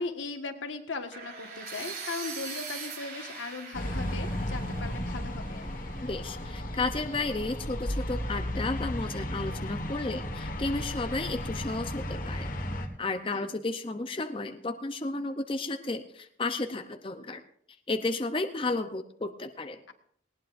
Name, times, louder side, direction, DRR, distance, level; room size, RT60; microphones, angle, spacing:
voice 1, 0.0-5.7 13.3-13.5, left 3 dB, 85° left, 5 dB, 1.6 m, -38 dB
sound 1, 1.1-7.0, right 5 dB, 55° right, 4.2 m, -42 dB
sound 2, 3.7-12.9, left 1 dB, 45° left, 1.5 m, -34 dB
voice 2, 6.0-12.5 13.0-17.4 17.9-19.8, left 2 dB, 30° left, 7 dB, 0.6 m, -33 dB
19.0 x 18.5 x 2.6 m, 0.64 s
head